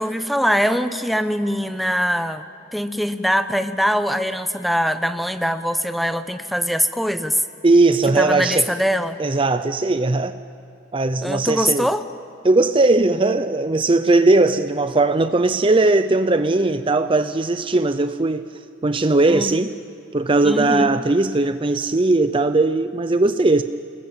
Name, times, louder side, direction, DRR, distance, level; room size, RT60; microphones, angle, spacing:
voice 1, 0.0-2.4 2.7-7.4 8.2-9.2 11.2-12.0 19.3-19.6 20.4-20.9, equal, ahead, 10 dB, 0.9 m, -22 dB
voice 2, 7.6-8.7 9.2-10.4 10.9-11.9 12.4-18.5 18.8-19.8 20.1-23.6, right 2 dB, 25° right, 10 dB, 0.6 m, -18 dB
29.5 x 20.5 x 8.9 m, 2.6 s
head